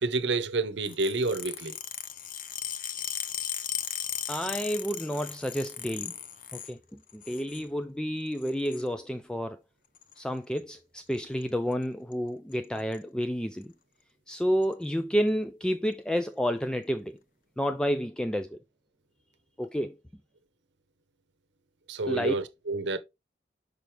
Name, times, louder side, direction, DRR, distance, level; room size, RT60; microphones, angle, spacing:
voice 1, 0.0-1.7 21.9-23.0, right 3 dB, 75° right, 0.8 m, -29 dB
sound 1, 0.8-6.7 7.1-7.6 8.4-8.9 10.0-10.2 11.1-11.4 11.7-11.8 12.1-12.2 12.5-13.0 13.6-13.7 14.6-14.7, left 10 dB, 50° left, 0.6 m, -37 dB
voice 2, 4.3-6.1 6.5-9.6 10.2-13.7 14.3-17.2 17.6-18.6 19.6-20.0 22.1-22.3, equal, 5° left, 0.3 m, -30 dB
6.0 x 5.1 x 3.3 m
head